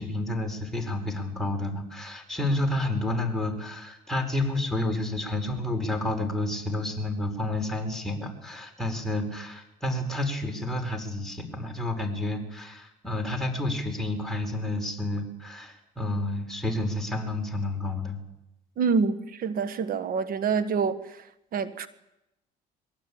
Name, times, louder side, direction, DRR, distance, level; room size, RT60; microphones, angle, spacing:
voice 1, 0.0-18.2, left 1 dB, ahead, 5.0 m, -30 dB
voice 2, 18.8-21.2 21.5-21.9, right 5 dB, 60° right, 1.6 m, -27 dB
22.0 x 18.0 x 8.8 m
cardioid pair, 110°, 17 cm